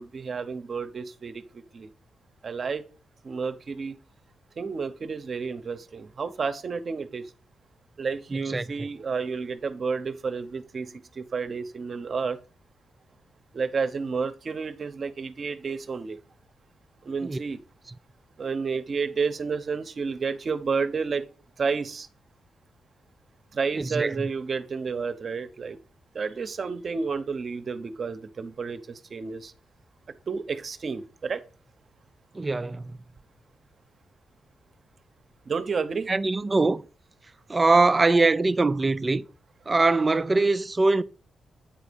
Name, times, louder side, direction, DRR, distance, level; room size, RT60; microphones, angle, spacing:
voice 1, 0.0-1.9 2.4-2.8 3.2-4.0 4.6-7.3 8.0-12.4 13.5-16.2 17.0-17.6 18.4-21.3 21.6-22.1 23.5-25.8 26.1-29.5 30.3-31.4 35.5-36.1, right 5 dB, 45° right, 0.9 m, -31 dB
voice 2, 8.3-8.9 17.2-17.4 23.8-24.3 32.3-33.0 36.1-36.8 37.5-39.2 39.7-41.0, right 3 dB, 25° right, 0.5 m, -22 dB
9.0 x 4.1 x 5.2 m
cardioid pair, 110°, 0 cm